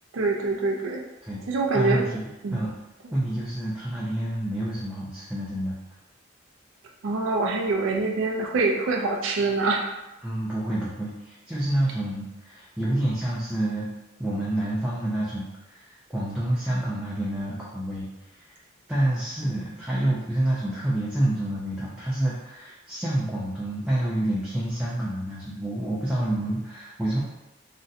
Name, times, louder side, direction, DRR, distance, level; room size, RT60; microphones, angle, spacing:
voice 1, 0.1-1.0 1.5-2.1 2.4-2.7 7.0-9.9, right 3 dB, 85° right, 1 dB, 0.4 m, -25 dB
voice 2, 1.7-2.7 3.1-5.8 10.2-13.9 14.2-18.6 18.9-27.2, right 1 dB, 5° right, -8 dB, 0.4 m, -28 dB
3.7 x 2.1 x 2.7 m, 0.98 s
head